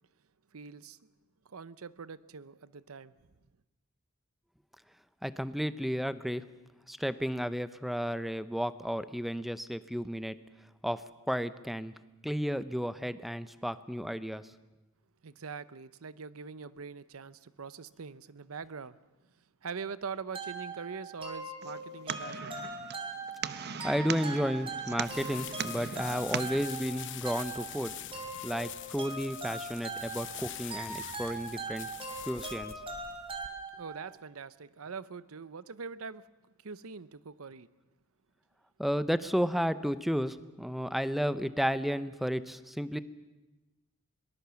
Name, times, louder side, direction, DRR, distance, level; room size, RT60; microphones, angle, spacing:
voice 1, 0.5-1.0 1.4-3.3 15.2-19.0 19.6-22.5 33.7-36.3 36.6-37.7, right 5 dB, 85° right, 16 dB, 0.7 m, -43 dB
voice 2, 5.2-6.4 6.9-10.4 10.8-11.0 11.3-11.9 12.2-14.4 23.5-27.9 28.4-31.9 32.3-32.7 38.8-43.0, equal, ahead, 14 dB, 0.7 m, -32 dB
sound 1, 20.3-34.2, right 3 dB, 25° right, 3.1 m, -41 dB
sound 2, 21.6-26.6, right 7 dB, 50° right, 0.8 m, -39 dB
sound 3, 25.0-33.5, left 12 dB, 60° left, 0.8 m, -45 dB
22.5 x 19.5 x 7.0 m, 1.1 s
head